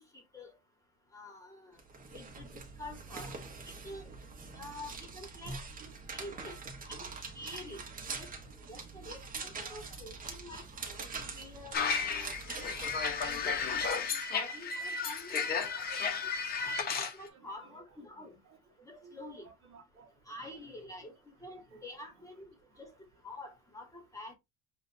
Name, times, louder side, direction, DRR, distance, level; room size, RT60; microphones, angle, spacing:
voice 1, 0.1-0.5 1.1-1.8 2.1-2.5 2.8-3.3 3.8-4.1 4.5-5.6 6.1-6.6 6.9-7.0 7.3-7.8 8.2-8.3 8.7-12.8 13.1-15.5 16.7-18.3 18.8-19.5 20.3-22.9 23.2-24.3, left 1 dB, 10° left, 1.3 m, -48 dB
sound 1, 1.8-13.9, right 4 dB, 25° right, 1.2 m, -44 dB
voice 2, 9.0-10.0 12.2-12.3 12.6-12.7 15.8-16.3 18.8-19.2 19.7-20.1 21.7-21.8, right 6 dB, 45° right, 1.5 m, -56 dB
sound 2, 11.7-17.1, left 5 dB, 30° left, 0.9 m, -33 dB
7.3 x 2.6 x 2.6 m
cardioid pair, 160°, 31 cm